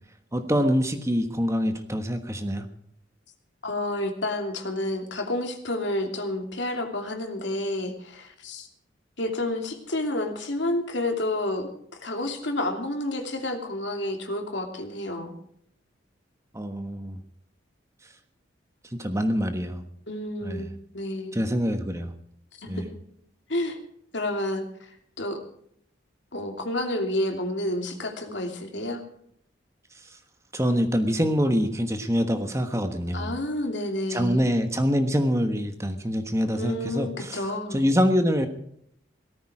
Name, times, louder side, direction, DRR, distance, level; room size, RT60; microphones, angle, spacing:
voice 1, 0.3-2.7 16.5-17.2 18.9-19.8 20.4-20.7 21.3-22.1 22.7-22.9 30.5-33.3 34.1-37.4 37.7-38.5, equal, 15° right, 7 dB, 1.2 m, -25 dB
voice 2, 3.6-8.7 9.2-15.3 20.1-21.4 22.6-22.8 23.5-23.8 24.1-25.4 26.3-29.0 33.1-34.4 36.5-37.8, left 1 dB, 65° left, 4 dB, 2.8 m, -30 dB
17.5 x 14.0 x 4.9 m, 0.68 s
head